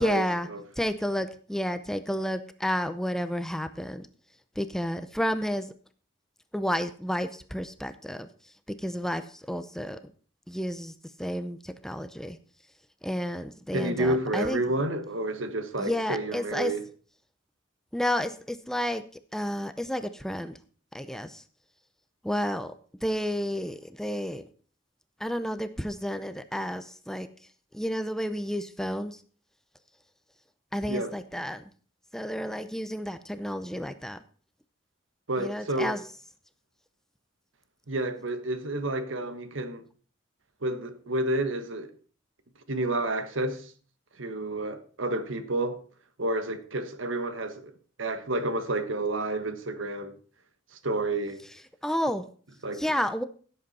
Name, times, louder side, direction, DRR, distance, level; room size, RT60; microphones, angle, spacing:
voice 1, 0.0-0.5 0.8-4.1 4.6-5.7 6.5-8.3 8.8-10.0 10.5-12.4 13.0-14.6 15.8-16.7 17.9-19.0 19.3-20.6 20.9-21.4 22.2-22.7 23.0-24.4 25.2-27.3 27.7-29.2 30.7-31.6 32.1-34.2 35.4-36.0 51.8-52.2 52.8-53.2, equal, ahead, 0.6 m, -31 dB
voice 2, 13.7-16.8 30.9-31.1 35.3-36.0 37.9-39.8 40.6-41.9 42.7-43.7 44.2-45.8 46.2-47.7 48.0-50.2 50.8-51.4 52.6-52.8, right 2 dB, 80° right, 1.4 m, -30 dB
16.5 x 7.9 x 4.2 m
head